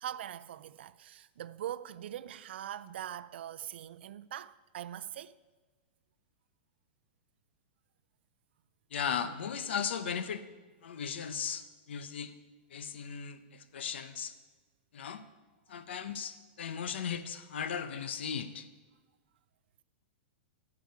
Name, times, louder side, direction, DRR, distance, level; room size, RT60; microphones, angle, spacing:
voice 1, 0.0-5.3, right 11 dB, 75° right, 0.4 m, -42 dB
voice 2, 8.9-10.4 10.8-12.3 12.7-14.3 14.9-15.2 15.7-18.7, left 7 dB, 90° left, 0.9 m, -37 dB
11.5 x 5.0 x 8.4 m
supercardioid pair, 165°, 6 cm